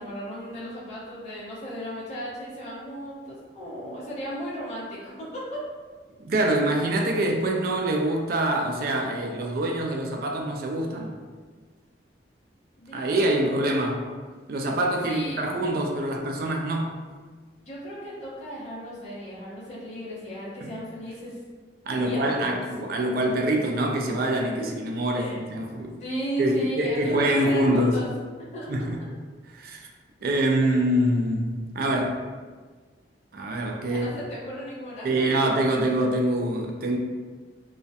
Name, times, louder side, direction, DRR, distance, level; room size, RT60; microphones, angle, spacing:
voice 1, 0.0-5.1 5.5-5.6 12.8-13.2 15.0-15.4 17.7-21.4 22.0-22.6 25.1-25.4 26.0-28.1 28.5-28.7 33.9-35.1, equal, 40° left, -9 dB, 0.8 m, -35 dB
voice 2, 6.3-11.2 12.9-14.0 14.5-17.0 20.6-20.7 21.9-25.9 26.4-28.0 28.7-29.0 29.5-29.9 30.2-32.2 33.3-34.0 35.0-37.0, right 1 dB, 55° right, 1 dB, 0.3 m, -25 dB
2.3 x 2.1 x 2.6 m, 1.4 s
head